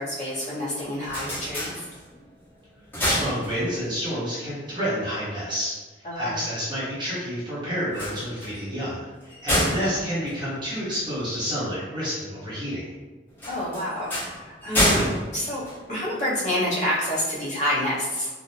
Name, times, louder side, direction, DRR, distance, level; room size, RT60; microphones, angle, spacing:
voice 1, 0.0-1.8 6.0-6.4 9.8-10.1 13.5-15.6 15.9-18.3, left 1 dB, 40° left, -9 dB, 1.0 m, -28 dB
sound 1, 0.8-2.3 2.7-4.0 7.8-11.3 13.4-16.4, equal, 10° left, 0.8 m, -28 dB
voice 2, 3.0-5.7 6.0-12.9, equal, 25° right, -9 dB, 0.8 m, -29 dB
3.3 x 2.0 x 2.7 m, 1.3 s
head